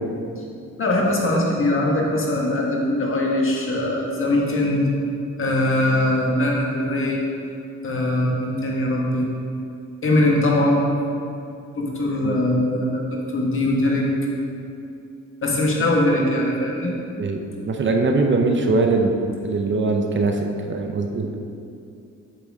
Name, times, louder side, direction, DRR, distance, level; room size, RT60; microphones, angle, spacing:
voice 1, 0.8-4.9 5.4-7.2 7.8-9.3 10.0-10.9 11.7-14.0 15.4-16.9, left 1 dB, 45° left, -2 dB, 1.7 m, -21 dB
voice 2, 17.7-19.2 19.4-20.4 20.7-21.3, right 3 dB, 40° right, 3 dB, 0.8 m, -21 dB
8.5 x 6.8 x 3.6 m, 2.6 s
cardioid pair, 90°, 30 cm